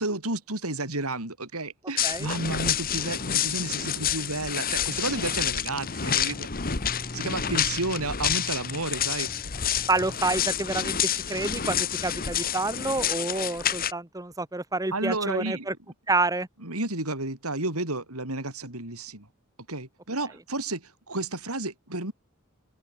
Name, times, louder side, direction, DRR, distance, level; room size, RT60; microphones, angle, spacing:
voice 1, 0.0-6.5 7.1-9.3 14.9-15.7 16.6-19.3 19.7-22.1, right 2 dB, 85° right, 7.5 m, -31 dB
sound 1, 2.0-13.9, left 9 dB, 40° left, 1.4 m, -28 dB
sound 2, 3.2-10.2, equal, 25° left, 3.7 m, -44 dB
voice 2, 9.9-15.7 16.1-16.5, right 2 dB, 15° right, 1.4 m, -28 dB
open air
head